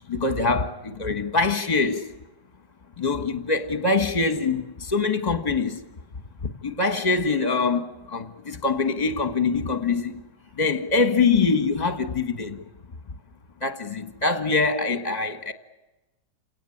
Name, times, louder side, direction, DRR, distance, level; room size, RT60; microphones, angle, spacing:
voice 1, 0.1-2.1 3.0-5.8 6.4-10.2 10.5-12.6 13.6-15.5, left 4 dB, 25° left, 1.4 m, -24 dB
28.0 x 18.0 x 8.6 m
omnidirectional pair, 1.8 m